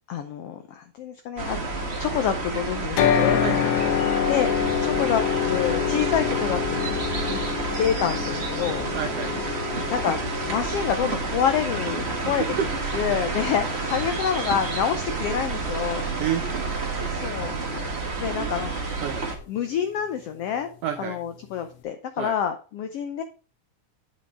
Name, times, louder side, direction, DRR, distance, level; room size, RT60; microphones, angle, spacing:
voice 1, 0.1-3.4 4.3-4.5 4.8-7.0 7.3-7.4 7.8-8.8 9.9-12.4 12.9-16.1 17.1-17.8 18.2-18.9 19.5-20.7 21.0-23.2, left 8 dB, 90° left, 8 dB, 1.3 m, -27 dB
sound 1, 1.4-19.4, right 3 dB, 55° right, 0.7 m, -29 dB
sound 2, 3.0-17.1, left 10 dB, 70° left, 2.2 m, -28 dB
voice 2, 3.4-4.3 8.9-9.3 12.2-12.7 16.2-16.4 18.4-18.5 19.0-19.2 20.8-21.2 22.2-22.3, right 10 dB, 90° right, 8 dB, 1.3 m, -30 dB
8.5 x 6.5 x 3.6 m, 0.36 s
omnidirectional pair, 3.6 m